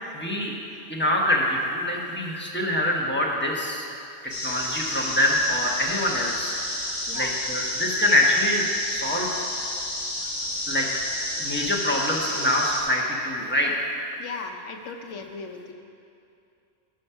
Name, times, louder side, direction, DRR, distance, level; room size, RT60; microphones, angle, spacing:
voice 1, 0.1-0.5 0.9-3.9 4.4-9.3 10.7-10.8 11.4-13.9, left 1 dB, 10° left, -3 dB, 1.1 m, -25 dB
sound 1, 4.3-12.8, left 1 dB, 50° left, 1.8 m, -30 dB
voice 2, 14.2-15.7, left 5 dB, 80° left, 4 dB, 1.1 m, -37 dB
12.5 x 5.3 x 5.7 m, 2.6 s
omnidirectional pair, 1.2 m